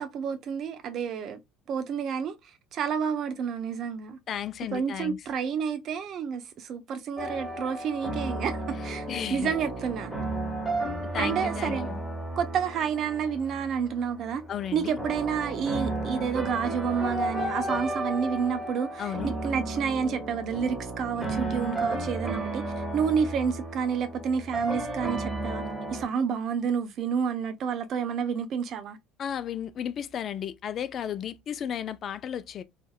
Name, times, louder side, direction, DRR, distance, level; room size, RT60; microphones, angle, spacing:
voice 1, 0.0-1.4 1.7-4.2 4.7-10.1 11.2-11.9 12.4-14.4 14.7-25.6 25.9-29.0, right 7 dB, 50° right, 0.4 m, -30 dB
voice 2, 4.3-5.2 9.1-9.5 11.1-12.0 14.5-15.0 19.0-19.4 29.2-32.6, left 9 dB, 45° left, 0.3 m, -34 dB
sound 1, 7.2-26.1, right 2 dB, 10° right, 1.5 m, -33 dB
2.5 x 2.5 x 2.3 m
hypercardioid pair, 70°, 0 cm